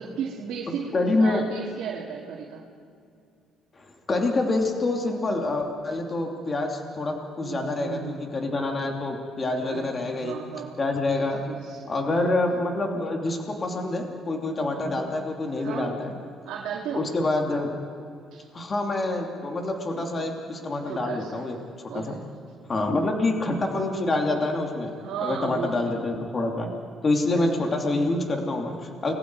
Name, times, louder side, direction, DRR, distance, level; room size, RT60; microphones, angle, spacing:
voice 1, 0.0-2.6 7.4-8.2 9.6-9.9 10.2-10.8 11.1-12.3 14.7-15.0 15.6-15.9 16.4-17.1 18.3-18.5 19.9-20.3 20.9-21.5 21.9-22.2 23.0-23.3 25.0-25.9 26.5-26.7 27.3-27.4, right 7 dB, 80° right, -3 dB, 2.6 m, -35 dB
voice 2, 0.9-1.4 3.7-10.4 10.8-11.4 11.9-16.1 16.9-17.7 18.5-21.6 21.9-22.2 22.7-24.9 25.2-26.7 27.0-29.1, left 2 dB, 35° left, 2 dB, 3.0 m, -26 dB
30.0 x 21.0 x 4.9 m, 2.4 s
cardioid pair, 95°, 0 cm